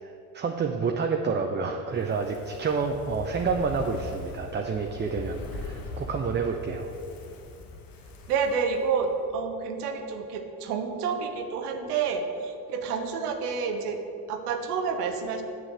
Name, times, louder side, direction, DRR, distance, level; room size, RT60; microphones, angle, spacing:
voice 1, 0.3-6.9, right 5 dB, 25° right, 3 dB, 0.7 m, -29 dB
Fire, 1.9-9.3 9.6-9.7, left 3 dB, 50° left, 1.3 m, -41 dB
voice 2, 8.3-14.0 14.3-15.4, right 5 dB, 85° right, 6 dB, 1.0 m, -29 dB
7.6 x 6.3 x 6.5 m, 2.6 s
hypercardioid pair, 65°, 45 cm